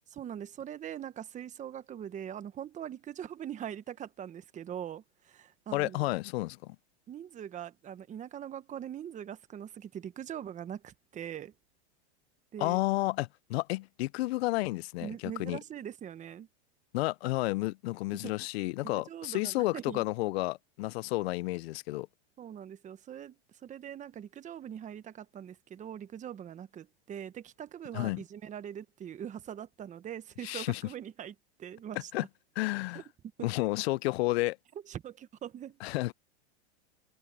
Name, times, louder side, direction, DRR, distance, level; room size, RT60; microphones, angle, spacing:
voice 1, 0.1-6.1 7.1-11.5 12.5-12.8 15.0-16.5 18.2-18.3 18.8-20.0 22.4-31.3 31.6-32.1 32.9-33.0 34.9-35.8, right 9 dB, 20° right, 1.2 m, -42 dB
voice 2, 5.7-6.8 12.6-15.6 16.9-22.1 27.9-28.2 30.4-30.8 32.1-32.2 32.6-33.0 33.4-34.6 35.8-36.1, left 20 dB, 65° left, 0.6 m, -31 dB
supercardioid pair, 130°, 34 cm